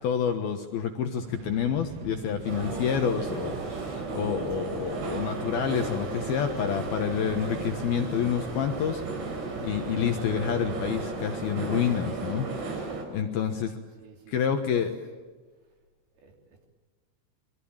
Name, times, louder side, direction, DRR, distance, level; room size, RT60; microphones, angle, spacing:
voice 1, 0.0-9.0 9.6-13.7 14.3-14.9, left 8 dB, 65° left, 5 dB, 2.7 m, -28 dB
sound 1, 1.2-11.0, right 10 dB, 85° right, 3.8 m, -43 dB
sound 2, 2.4-13.0, right 3 dB, 70° right, 6.5 m, -34 dB
voice 2, 12.9-13.5 13.9-14.8 16.1-16.7, right 5 dB, 55° right, 2 dB, 5.0 m, -53 dB
28.0 x 23.0 x 8.8 m, 1.4 s
omnidirectional pair, 5.6 m